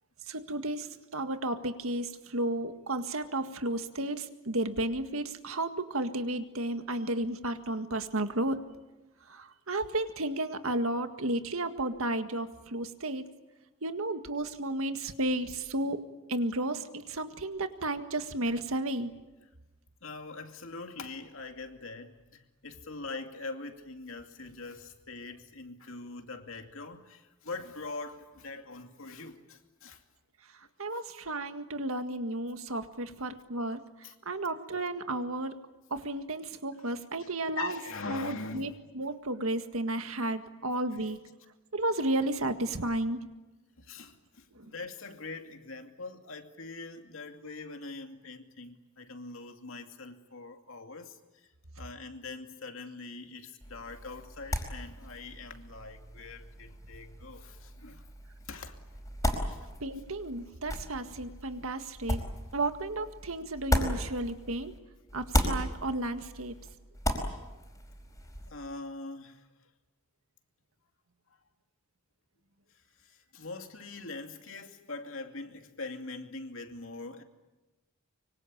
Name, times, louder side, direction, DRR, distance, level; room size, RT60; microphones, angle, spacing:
voice 1, 0.3-8.6 9.3-13.3 13.8-16.0 16.3-19.1 30.8-35.6 35.9-37.8 38.1-41.2 41.7-43.2 44.6-44.7 59.8-62.2 62.5-64.7 65.1-66.5, right 1 dB, 75° right, 1.8 m, -33 dB
voice 2, 20.0-30.0 34.0-34.1 37.2-37.3 37.6-38.7 40.9-41.0 43.8-51.2 51.8-58.0 58.4-58.8 59.5-59.7 68.5-69.4 73.0-77.2, left 3 dB, 65° left, 2.5 m, -43 dB
sound 1, 53.6-64.8 65.1-68.5, left 1 dB, 15° left, 4.6 m, -35 dB
25.0 x 24.5 x 8.8 m
head